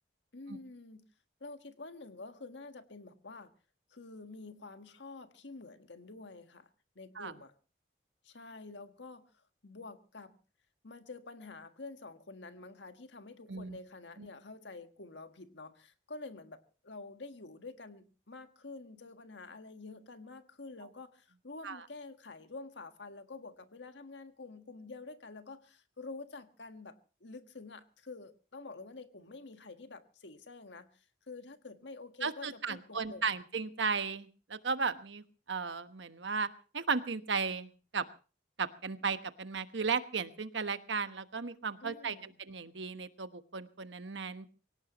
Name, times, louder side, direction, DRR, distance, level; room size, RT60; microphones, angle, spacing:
voice 1, 0.3-1.0 1.4-3.5 3.9-6.7 6.9-7.5 8.2-10.4 10.8-33.3 41.8-42.4, left 3 dB, 80° left, 8 dB, 1.6 m, -48 dB
voice 2, 32.2-36.5 36.7-38.0 38.6-44.5, right 5 dB, 85° right, 11 dB, 1.2 m, -35 dB
24.0 x 17.5 x 3.0 m, 0.35 s
head